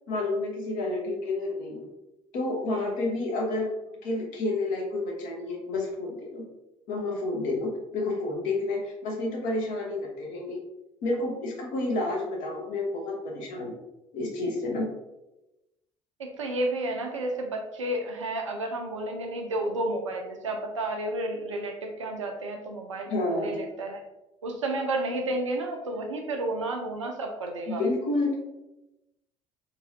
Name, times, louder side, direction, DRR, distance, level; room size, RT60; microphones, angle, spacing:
voice 1, 0.1-1.9 2.3-6.4 6.9-10.6 11.0-13.8 14.1-14.9 23.1-23.6 27.7-28.4, left 2 dB, 55° left, 0 dB, 0.8 m, -30 dB
voice 2, 16.2-24.0 24.4-27.8, right 1 dB, 80° right, 3 dB, 0.4 m, -31 dB
2.8 x 2.6 x 2.9 m, 0.94 s
figure-of-eight pair, 55°, 16 cm